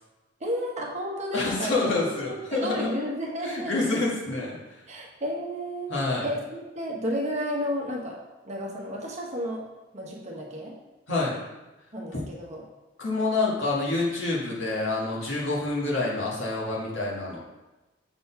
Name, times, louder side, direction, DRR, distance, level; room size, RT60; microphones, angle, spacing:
voice 1, 0.4-1.7 2.0-3.7 4.9-5.9 6.2-8.2 8.4-9.7 9.9-10.8 11.9-12.6, equal, 35° right, -1 dB, 1.1 m, -32 dB
voice 2, 1.3-2.9 3.4-4.8 5.9-6.3 11.1-11.3 12.1-12.2 13.0-17.4, left 2 dB, 60° left, -5 dB, 1.9 m, -27 dB
6.8 x 4.2 x 5.7 m, 1.1 s
head